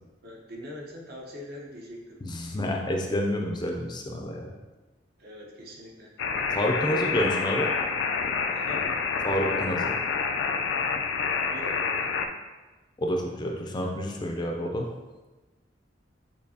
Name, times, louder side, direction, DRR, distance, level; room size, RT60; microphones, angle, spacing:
voice 1, 0.2-2.2 5.2-6.1 6.9-7.3 8.5-8.9 11.4-11.9, left 1 dB, 60° right, -1 dB, 0.8 m, -42 dB
voice 2, 2.2-4.5 6.5-7.7 9.2-9.9 13.0-14.9, equal, 25° left, 1 dB, 0.4 m, -29 dB
sound 1, 6.2-12.3, left 5 dB, 85° left, 0.4 m, -28 dB
6.5 x 2.8 x 2.7 m, 1.2 s
head